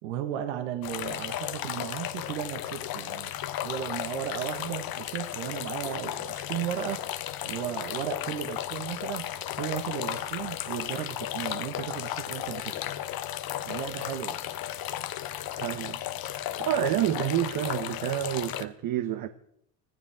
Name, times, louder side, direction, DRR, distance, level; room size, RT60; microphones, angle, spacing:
voice 1, 0.0-3.3 3.6-7.0 7.4-12.9 13.6-14.4, right 10 dB, 80° right, 1.6 m, -35 dB
sound 1, 0.8-18.6, left 12 dB, 45° left, 1.1 m, -34 dB
voice 2, 15.6-16.0 16.6-19.3, right 12 dB, 45° right, 1.1 m, -28 dB
25.0 x 14.5 x 3.6 m
supercardioid pair, 90°, 47 cm